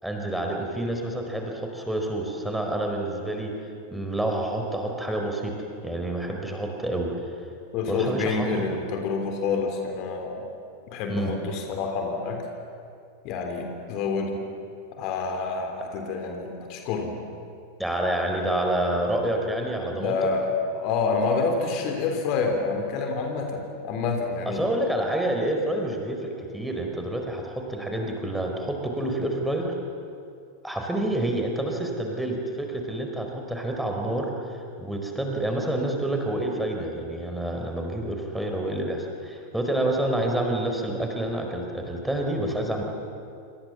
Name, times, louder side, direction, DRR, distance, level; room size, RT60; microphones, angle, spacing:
voice 1, 0.0-3.6 3.9-5.6 5.8-7.1 7.9-8.5 11.1-11.3 17.8-20.2 24.6-29.7 30.6-42.8, right 1 dB, 5° right, 2 dB, 4.4 m, -28 dB
voice 2, 7.7-10.5 10.9-12.5 13.2-14.4 14.9-17.2 19.9-24.7, left 4 dB, 40° left, 4 dB, 3.4 m, -28 dB
27.5 x 27.0 x 7.3 m, 2.5 s
figure-of-eight pair, 90°, 0 cm